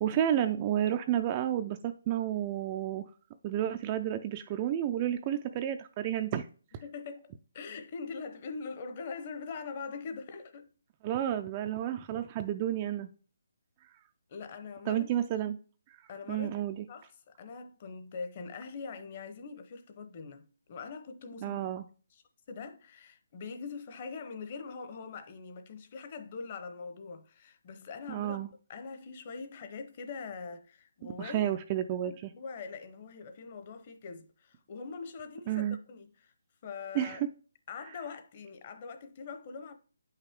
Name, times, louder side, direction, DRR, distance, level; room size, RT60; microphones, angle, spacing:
voice 1, 0.0-3.1 3.4-6.5 11.0-13.1 14.9-15.6 16.3-16.8 21.4-21.8 28.1-28.5 31.2-32.3 35.5-35.8 36.9-37.2, right 11 dB, 20° right, 0.3 m, -31 dB
voice 2, 6.8-10.7 14.3-15.1 16.1-16.6 16.9-21.6 22.1-28.4 28.7-31.5 32.0-36.3 36.6-37.2 37.7-39.7, left 5 dB, 30° left, 0.8 m, -43 dB
9.2 x 5.7 x 3.5 m
hypercardioid pair, 170°, 0 cm